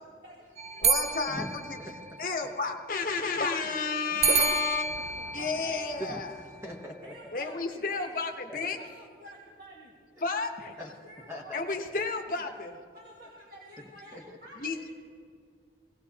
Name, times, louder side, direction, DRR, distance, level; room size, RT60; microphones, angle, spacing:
voice 1, 0.2-1.2 5.0-5.8 7.0-8.1 8.7-10.0 10.4-11.9 12.6-14.9, right 1 dB, 50° right, -4 dB, 1.7 m, -50 dB
sound 1, 0.6-2.5 4.2-6.6, right 5 dB, 35° right, 0.4 m, -30 dB
voice 2, 0.8-1.8 2.2-4.8 5.3-6.3 7.3-8.8 10.2-10.5 11.5-12.7 14.6-14.8, left 4 dB, 50° left, 4 dB, 0.9 m, -31 dB
voice 3, 1.8-2.2 4.3-4.6 4.9-7.4 8.5-8.8 10.8-12.0 13.8-14.4, equal, 15° right, -1 dB, 0.9 m, -43 dB
18.0 x 17.5 x 2.8 m, 2.1 s
head